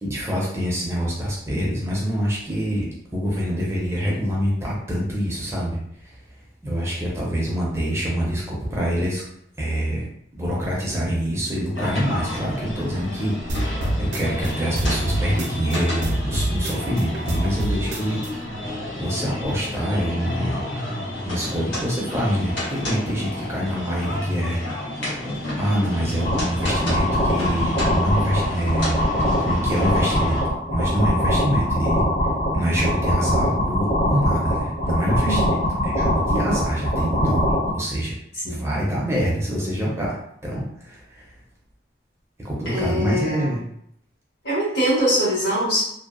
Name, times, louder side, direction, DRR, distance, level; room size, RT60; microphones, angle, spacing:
voice 1, 0.0-2.9 3.1-6.2 6.6-9.2 9.6-10.1 10.4-18.2 19.0-20.6 21.2-24.6 24.9-25.1 25.6-29.0 29.4-30.4 30.7-32.1 32.5-35.6 35.8-37.4 37.7-38.2 38.4-41.3 42.4-43.6, equal, 15° right, -5 dB, 0.5 m, -25 dB
sound 1, 11.7-30.4, left 1 dB, 85° left, 1.0 m, -31 dB
sound 2, 13.5-15.8 16.0-18.3, right 1 dB, 75° right, 0.5 m, -26 dB
sound 3, 26.2-37.7, equal, 45° left, 0.8 m, -23 dB
voice 2, 35.2-35.8 38.4-38.7 42.7-43.5 44.4-45.8, equal, 65° left, -8 dB, 1.3 m, -23 dB
2.6 x 2.1 x 2.4 m, 0.72 s
head